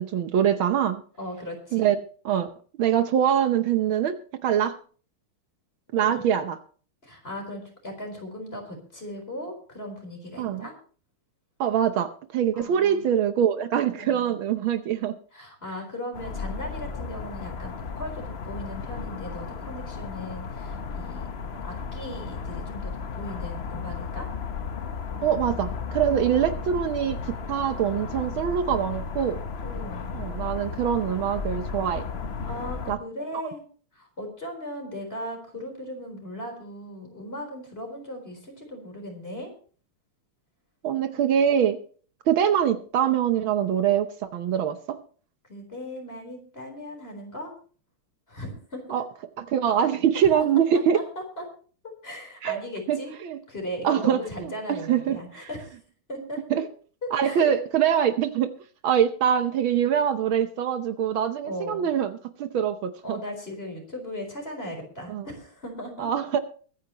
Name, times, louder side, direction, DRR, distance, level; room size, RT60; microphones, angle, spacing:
voice 1, 0.0-1.0 1.7-2.0 2.2-2.5 2.8-4.8 5.9-6.6 10.4-10.7 11.6-15.2 25.2-29.4 30.1-32.0 32.9-33.0 40.8-41.8 42.3-45.0 48.9-49.0 49.4-51.0 52.4-52.6 52.9-53.4 53.8-55.5 56.5-56.6 57.1-58.5 58.8-63.2 65.1-65.3 66.0-66.4, right 9 dB, 70° right, 9 dB, 1.7 m, -24 dB
voice 2, 1.2-1.9 5.9-6.1 7.0-10.7 12.5-13.2 13.9-14.3 15.3-21.3 21.6-24.3 26.1-26.6 29.6-30.2 32.4-33.6 33.9-39.5 45.5-47.5 48.3-49.0 50.9-51.0 51.4-51.5 52.0-53.1 53.5-55.8 56.1-56.4 57.2-57.5 61.4-61.9 63.0-66.1, equal, 25° left, 2 dB, 4.4 m, -38 dB
sound 1, 16.1-33.0, left 5 dB, 50° left, 0.7 m, -34 dB
23.0 x 10.0 x 3.0 m, 0.42 s
omnidirectional pair, 2.3 m